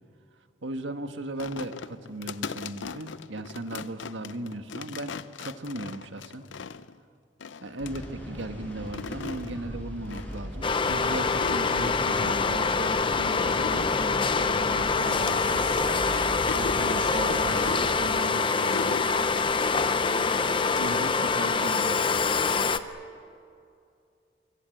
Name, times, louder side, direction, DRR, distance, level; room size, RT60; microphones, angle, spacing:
voice 1, 0.6-6.5 7.6-15.7 16.5-19.1 20.8-22.0, right 1 dB, 75° right, 8 dB, 1.6 m, -37 dB
sound 1, 1.4-7.0 7.4-8.1 8.7-9.5 10.1-10.4 10.6-10.7 11.3-12.2 12.7-15.4 15.7-15.9 16.1-19.1 20.0-21.1, left 5 dB, 75° left, 0.7 m, -39 dB
sound 2, 7.8-17.9, equal, 10° left, 6.0 m, -37 dB
sound 3, 10.6-22.8, left 4 dB, 25° left, 0.7 m, -25 dB
25.0 x 23.5 x 7.9 m, 2.4 s
head